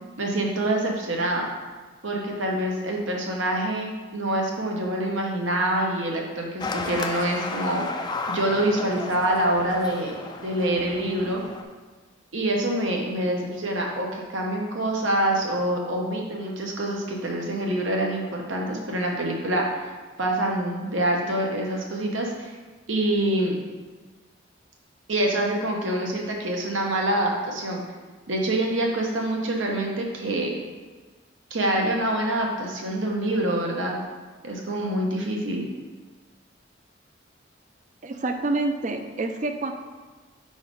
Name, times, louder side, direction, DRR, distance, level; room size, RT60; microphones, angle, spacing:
voice 1, 0.2-1.5 2.0-7.8 8.3-11.4 12.3-19.7 20.2-22.5 22.9-23.6 25.1-27.8 28.3-30.6 31.5-33.9 34.4-35.6, right 1 dB, 85° right, 0 dB, 1.1 m, -26 dB
sound 1, 6.6-11.6, left 3 dB, 25° left, 0.4 m, -33 dB
voice 2, 38.0-39.7, right 2 dB, 40° right, 6 dB, 0.5 m, -27 dB
5.0 x 3.9 x 5.3 m, 1.3 s
head